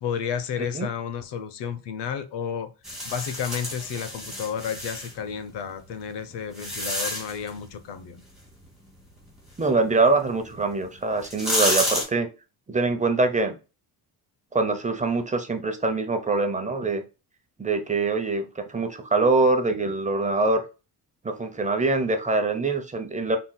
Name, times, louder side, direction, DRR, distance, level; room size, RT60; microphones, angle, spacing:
voice 1, 0.0-2.7 3.0-8.2, left 7 dB, 90° left, 0.8 m, -32 dB
sound 1, 2.8-5.1 5.9-7.5 10.5-10.6 11.1-12.0, equal, ahead, 2.3 m, -29 dB
voice 2, 9.6-12.3 12.7-13.6 14.5-17.0 17.6-20.6 21.2-23.4, right 3 dB, 20° right, 0.7 m, -24 dB
5.8 x 3.8 x 2.2 m
cardioid pair, 140°, 40 cm